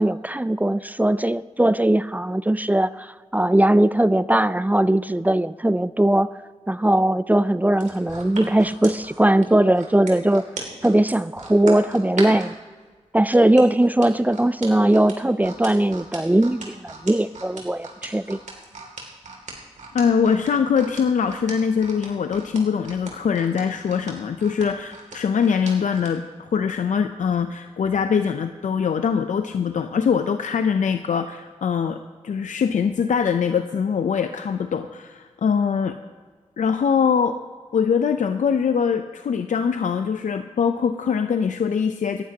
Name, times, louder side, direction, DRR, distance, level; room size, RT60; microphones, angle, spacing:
voice 1, 0.0-6.3 6.7-10.5 10.8-12.5 13.1-18.4, right 1 dB, 15° right, 16 dB, 0.4 m, -19 dB
sound 1, 7.7-12.5 13.3-26.1 26.6-26.7, right 3 dB, 70° right, 2.5 m, -38 dB
voice 2, 19.9-32.0 32.2-36.0 36.6-37.4 37.7-42.2, left 6 dB, 75° left, 8 dB, 0.5 m, -22 dB
18.5 x 12.0 x 2.8 m, 1.5 s
cardioid pair, 50°, 13 cm